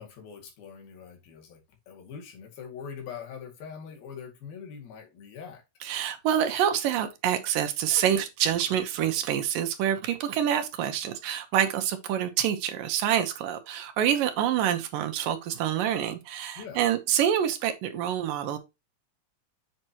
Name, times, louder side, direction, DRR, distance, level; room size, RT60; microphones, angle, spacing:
voice 1, 0.0-1.6 1.9-5.6 16.6-16.8, left 7 dB, 85° left, 4.0 m, -43 dB
voice 2, 5.8-18.6, right 10 dB, 75° right, 2.5 m, -27 dB
7.8 x 6.0 x 2.8 m
omnidirectional pair, 4.2 m